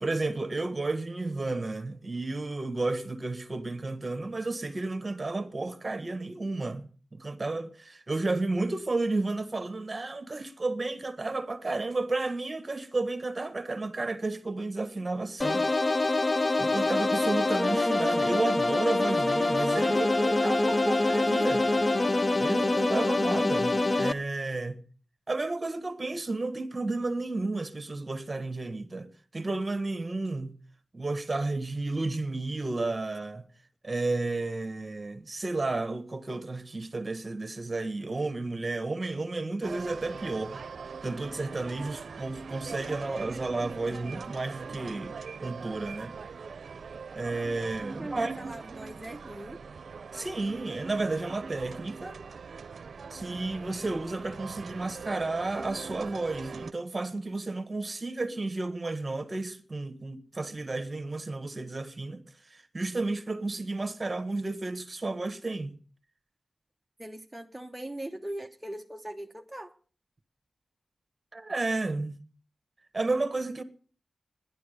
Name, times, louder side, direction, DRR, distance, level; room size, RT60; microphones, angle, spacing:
voice 1, 0.0-15.7 16.6-21.7 22.4-24.8 25.3-29.1 29.3-30.6 30.9-33.4 33.8-40.6 41.0-46.2 47.1-48.3 50.1-52.2 53.1-62.2 62.5-65.8 71.3-72.2 72.9-73.6, right 2 dB, 35° right, 1.5 m, -32 dB
sound 1, 15.4-24.1, left 2 dB, 35° left, 0.6 m, -25 dB
sound 2, 39.6-56.7, right 5 dB, 80° right, 0.6 m, -42 dB
voice 2, 47.9-49.6 67.0-69.7, right 1 dB, 10° right, 0.9 m, -40 dB
12.0 x 11.0 x 6.7 m
wide cardioid pair, 75°, 0 cm